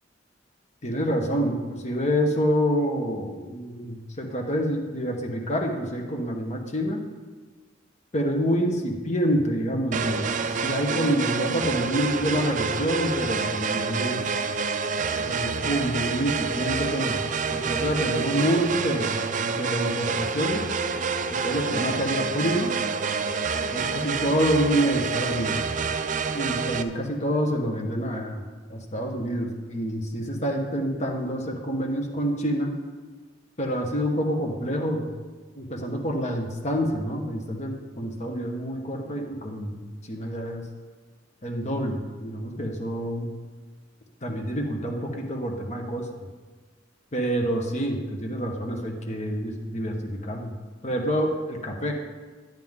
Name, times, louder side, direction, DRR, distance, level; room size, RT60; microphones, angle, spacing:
voice 1, 0.8-7.0 8.1-14.2 15.2-17.2 17.5-19.2 19.5-20.6 21.3-22.7 23.7-25.6 26.3-32.7 33.6-35.1 35.6-39.8 40.1-40.6 41.4-43.3 44.2-46.1 47.1-50.5 50.8-51.9, equal, 35° left, 2 dB, 1.3 m, -27 dB
sound 1, 9.9-26.8, right 5 dB, 40° right, 0.5 m, -28 dB
11.5 x 9.2 x 3.7 m, 1.3 s
head